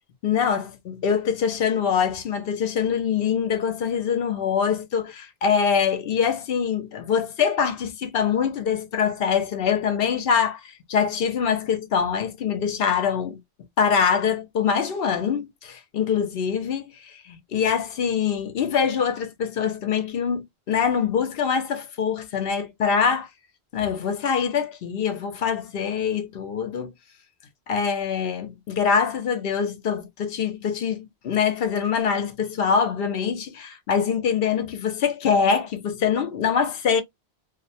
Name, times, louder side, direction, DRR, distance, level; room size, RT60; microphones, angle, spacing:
voice 1, 0.2-13.4 13.8-23.3 23.7-26.9 27.7-37.0, left 7 dB, 65° left, 0.8 m, -24 dB
2.5 x 2.1 x 2.6 m
omnidirectional pair, 1.1 m